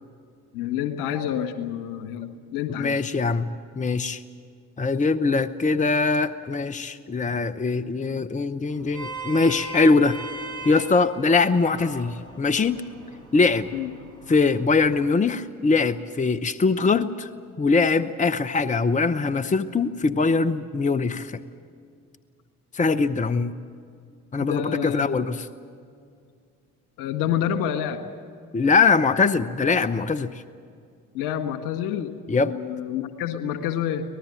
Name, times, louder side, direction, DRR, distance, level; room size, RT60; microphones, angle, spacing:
voice 1, 0.5-3.0 13.7-13.9 24.4-25.1 27.0-28.0 31.1-32.1 32.4-34.0, left 10 dB, 65° left, 8 dB, 1.8 m, -28 dB
voice 2, 2.8-3.5 3.8-4.2 4.8-10.2 10.6-12.8 13.3-13.7 14.3-17.3 17.6-21.4 22.7-23.5 24.3-25.5 28.5-30.4 32.3-32.5, left 4 dB, 15° left, 14 dB, 0.8 m, -22 dB
Vehicle horn car horn honking, 8.7-15.1, right 1 dB, 80° right, 5.5 m, -39 dB
25.0 x 19.0 x 7.6 m, 2.3 s
figure-of-eight pair, 45°, 43 cm